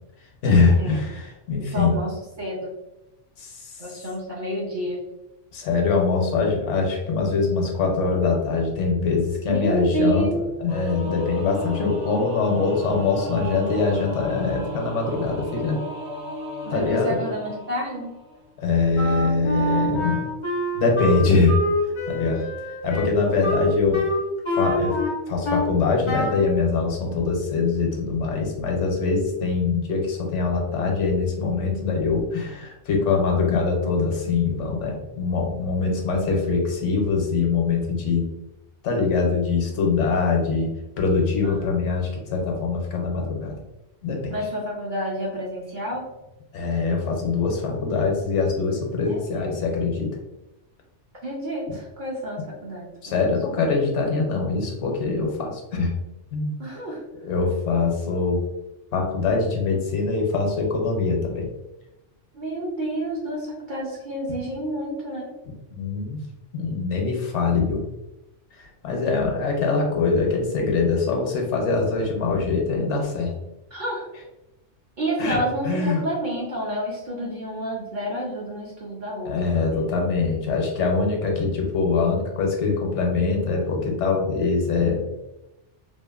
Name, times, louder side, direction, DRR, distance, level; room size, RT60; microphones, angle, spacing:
voice 1, 0.4-2.0 3.4-3.8 5.5-15.8 16.7-17.1 18.6-20.3 20.7-21.6 22.1-22.5 22.8-24.0 24.5-25.0 25.3-38.2 38.8-40.7 41.0-43.6 44.0-44.3 46.5-50.2 53.0-55.9 56.3-56.6 57.2-58.4 58.9-61.5 65.7-66.2 66.5-67.8 68.5-73.3 75.2-75.4 75.6-76.0 79.2-85.1, left 4 dB, 75° left, 1 dB, 1.0 m, -23 dB
voice 2, 1.6-2.7 3.8-5.0 9.5-10.5 16.6-18.1 22.9-23.0 41.4-41.6 44.3-46.1 49.1-49.2 51.2-53.6 56.6-57.0 62.3-65.3 73.7-74.1 75.0-79.9, right 1 dB, 55° right, -4 dB, 0.6 m, -29 dB
Singing / Musical instrument, 10.7-18.4, right 1 dB, 80° right, 1.0 m, -34 dB
Wind instrument woodwind instrument, 18.9-25.7 26.0-26.5, equal, 45° left, 0.4 m, -26 dB
2.7 x 2.4 x 2.3 m, 0.97 s
omnidirectional pair, 1.2 m